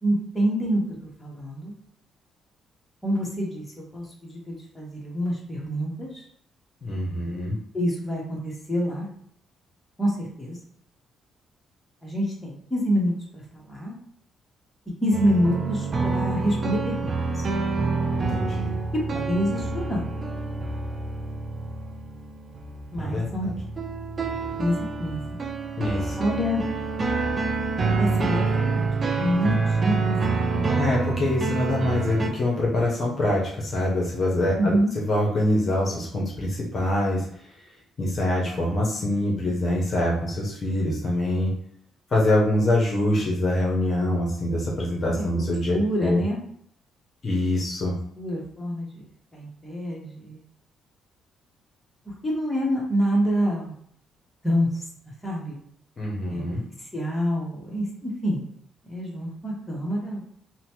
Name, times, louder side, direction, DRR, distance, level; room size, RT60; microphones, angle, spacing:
voice 1, 0.0-0.8 1.2-1.7 3.0-3.6 3.9-6.1 7.7-9.1 10.0-10.6 12.0-14.0 15.0-17.4 18.9-20.1 22.9-23.5 24.6-25.2 26.2-26.6 28.0-30.8 34.6-34.9 45.1-45.4 45.7-46.4 48.2-49.0 49.3-50.4 52.2-53.7 54.4-54.7 55.2-55.5 56.3-56.4 56.9-58.4 58.9-60.2, equal, 10° left, -4 dB, 1.0 m, -27 dB
voice 2, 6.8-7.6 18.1-18.8 23.0-23.5 25.8-26.1 30.8-37.3 38.0-41.6 42.1-46.2 47.2-48.0 56.0-56.6, left 1 dB, 40° left, -3 dB, 0.8 m, -25 dB
sound 1, 15.1-32.3, right 3 dB, 35° right, 0.4 m, -27 dB
2.9 x 2.1 x 2.9 m, 0.66 s
cardioid pair, 120°, 0 cm